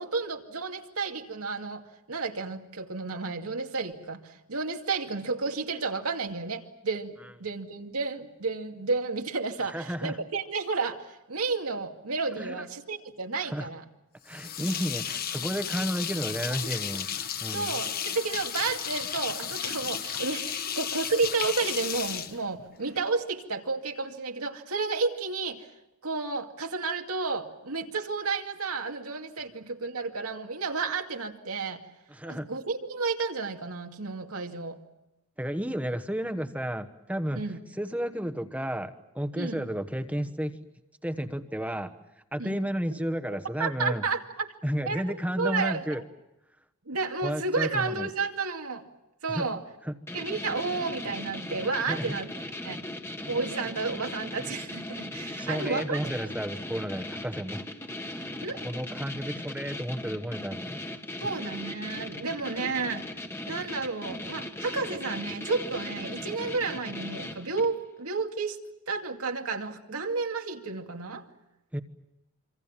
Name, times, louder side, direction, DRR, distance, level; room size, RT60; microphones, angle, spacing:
voice 1, 0.0-1.8 2.1-13.8 17.5-25.7 26.0-31.8 32.2-34.8 37.3-37.6 39.4-39.7 42.4-42.6 43.6-44.5 44.8-45.0 45.4-46.0 46.9-48.8 49.2-49.6 50.1-52.8 53.3-56.0 58.4-58.6 61.2-63.0 63.5-68.6 68.9-71.2, right 4 dB, 85° right, 4 dB, 2.5 m, -31 dB
voice 2, 9.7-10.2 12.4-12.6 13.4-13.7 14.2-17.7 32.1-32.5 35.4-37.4 37.8-40.6 41.0-41.9 42.3-44.0 44.6-46.0 47.2-48.1 49.3-49.5 49.9-50.0 51.9-52.0 55.4-57.7 58.1-60.8 71.7-71.8, equal, 5° right, 10 dB, 1.1 m, -32 dB
sound 1, 14.3-23.1, left 8 dB, 40° left, 1.4 m, -33 dB
sound 2, 50.1-67.8, left 1 dB, 10° left, 1.5 m, -38 dB
26.5 x 26.0 x 7.3 m, 0.92 s
head